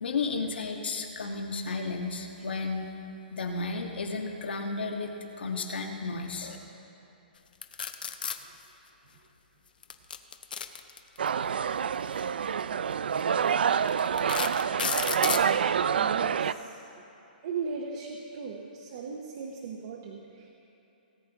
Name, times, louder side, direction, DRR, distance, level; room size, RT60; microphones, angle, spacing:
voice 1, 0.0-2.9 3.3-6.6, left 4 dB, 90° left, 3 dB, 1.4 m, -33 dB
sound 1, 7.6-8.4 9.8-11.3 12.4-12.6 13.2-13.3 13.9-15.5, left 7 dB, 60° left, 0.7 m, -32 dB
sound 2, 11.2-16.5, right 7 dB, 70° right, 0.3 m, -27 dB
voice 2, 15.9-16.8 17.4-20.5, right 5 dB, 30° right, 1 dB, 0.7 m, -37 dB
18.5 x 9.1 x 3.5 m, 2.9 s
hypercardioid pair, 180°, 5 cm